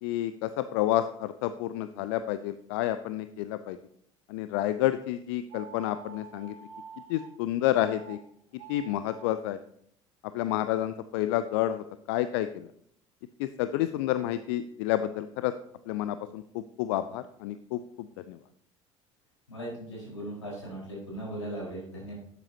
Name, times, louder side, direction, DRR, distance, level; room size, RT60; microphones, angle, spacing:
voice 1, 0.0-3.8 4.3-6.5 7.1-8.2 8.7-9.6 10.3-12.7 13.4-15.5 15.9-18.4, left 13 dB, 55° left, 12 dB, 0.4 m, -30 dB
sound 1, 5.5-7.3 7.8-8.2 8.5-9.4, right 6 dB, 50° right, 2.1 m, -47 dB
voice 2, 19.5-22.1, right 1 dB, 75° left, -4 dB, 4.5 m, -38 dB
12.0 x 8.2 x 2.8 m, 0.69 s
figure-of-eight pair, 60°, 16 cm